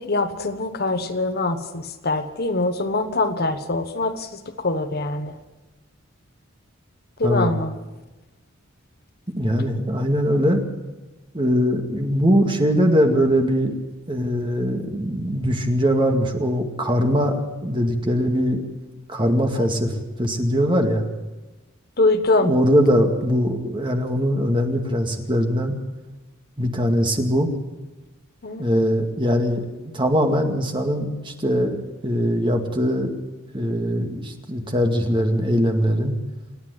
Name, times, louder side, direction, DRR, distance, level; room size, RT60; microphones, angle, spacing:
voice 1, 0.0-4.3 4.6-5.4 7.2-7.7 19.6-19.7 22.0-22.5 28.4-28.6, left 2 dB, 50° left, 8 dB, 1.3 m, -23 dB
voice 2, 7.2-7.5 9.4-10.6 11.3-13.8 14.1-18.6 19.1-19.9 20.2-21.0 22.4-25.8 26.6-27.5 28.6-33.1 33.5-36.1, equal, 25° right, 4 dB, 2.2 m, -21 dB
27.5 x 9.6 x 9.8 m, 1.1 s
head